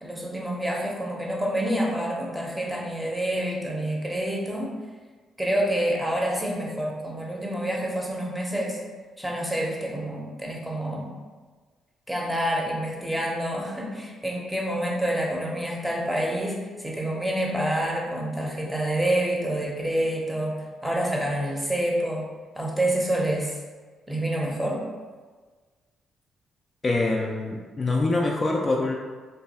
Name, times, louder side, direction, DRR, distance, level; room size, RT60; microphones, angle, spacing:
voice 1, 0.0-4.7 5.4-8.8 9.2-11.1 12.1-22.3 22.5-23.6 24.1-24.8, right 1 dB, 5° right, -2 dB, 0.7 m, -27 dB
voice 2, 26.8-28.9, left 2 dB, 30° left, -1 dB, 0.3 m, -24 dB
2.6 x 2.3 x 4.1 m, 1.4 s
cardioid pair, 90°, 0 cm